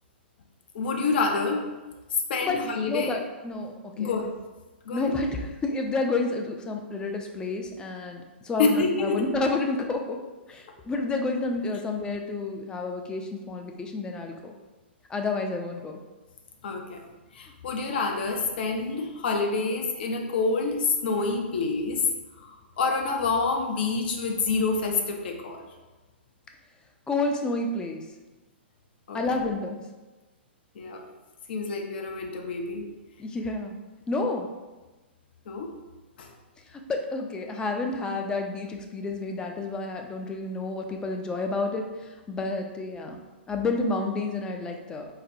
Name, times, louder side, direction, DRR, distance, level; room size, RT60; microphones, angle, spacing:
voice 1, 0.7-1.7 2.3-3.2 4.0-4.3 4.9-5.1 8.6-9.2 16.6-17.0 17.3-22.0 22.4-25.6 29.1-29.2 30.8-31.0 31.5-32.9 35.5-35.7 36.2-36.3, left 4 dB, 60° left, 3 dB, 0.6 m, -27 dB
voice 2, 2.9-4.1 4.9-10.2 10.5-14.5 15.1-16.0 27.1-28.1 29.1-29.8 33.2-33.7 34.1-34.5 36.7-43.2 43.5-45.1, left 3 dB, 15° left, 3 dB, 0.4 m, -30 dB
4.0 x 2.1 x 2.6 m, 1.2 s
hypercardioid pair, 120°, 6 cm